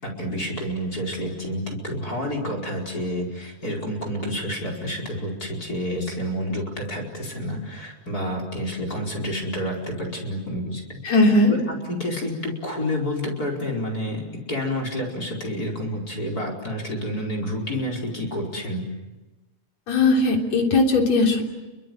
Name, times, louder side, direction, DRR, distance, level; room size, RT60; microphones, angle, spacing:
voice 1, 0.0-11.0 11.5-18.8, equal, 30° left, 2 dB, 5.1 m, -29 dB
voice 2, 11.0-11.5 19.9-21.4, left 2 dB, 60° left, 2 dB, 4.7 m, -18 dB
29.5 x 24.5 x 7.9 m, 1.1 s
omnidirectional pair, 3.5 m